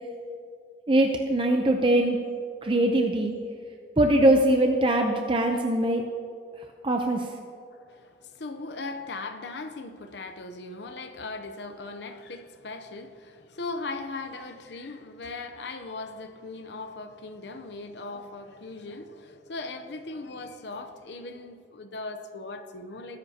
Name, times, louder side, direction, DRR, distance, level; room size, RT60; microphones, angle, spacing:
voice 1, 0.9-2.2 2.6-3.4 4.0-6.0 6.8-7.3, right 1 dB, 30° right, 3 dB, 0.6 m, -22 dB
voice 2, 7.9-23.2, left 3 dB, 70° left, 8 dB, 0.7 m, -38 dB
20.0 x 10.5 x 2.9 m, 2.3 s
head